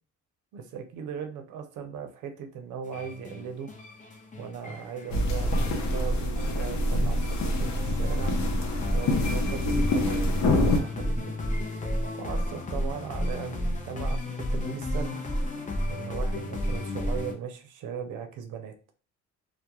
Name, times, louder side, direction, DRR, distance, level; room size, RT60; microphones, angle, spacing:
voice 1, 0.5-3.7 4.4-8.3 8.9-11.3 12.1-15.2 15.9-18.7, right 7 dB, 85° right, 6 dB, 0.6 m, -38 dB
sound 1, 2.9-17.3, left 1 dB, 25° left, 0.6 m, -32 dB
sound 2, 5.1-10.8, left 1 dB, 65° left, 0.6 m, -26 dB
2.3 x 2.1 x 2.8 m, 0.38 s
cardioid pair, 90°, 30 cm